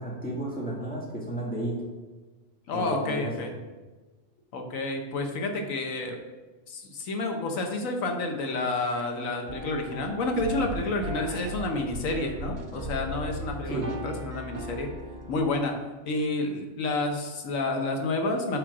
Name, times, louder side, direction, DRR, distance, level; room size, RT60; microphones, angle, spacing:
voice 1, 0.0-1.7 2.7-3.3 13.7-13.9, right 1 dB, 5° left, -5 dB, 1.9 m, -32 dB
voice 2, 2.7-3.5 4.5-6.2 6.7-14.9 15.3-15.7 16.1-18.6, left 2 dB, 90° left, 3 dB, 1.3 m, -29 dB
sound 1, 9.5-15.6, right 2 dB, 45° right, 0.7 m, -37 dB
5.6 x 4.9 x 5.9 m, 1.2 s
omnidirectional pair, 1.3 m